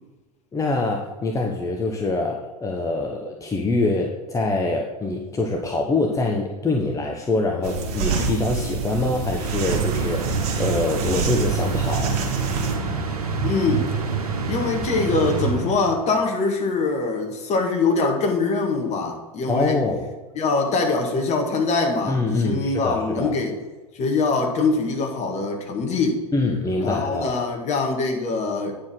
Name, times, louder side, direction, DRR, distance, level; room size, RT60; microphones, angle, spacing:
voice 1, 0.5-12.2 19.5-20.1 22.1-23.3 26.3-27.4, left 2 dB, 15° left, 2 dB, 1.0 m, -24 dB
sound 1, 7.6-12.8, right 4 dB, 50° right, 2.2 m, -27 dB
sound 2, 9.4-16.1, right 5 dB, 80° right, 1.5 m, -27 dB
voice 2, 13.4-13.9 14.5-19.8 20.4-23.6 23.9-26.2 26.8-28.8, left 3 dB, 35° left, 3 dB, 1.9 m, -23 dB
9.4 x 4.9 x 6.1 m, 1.2 s
figure-of-eight pair, 85°, 19 cm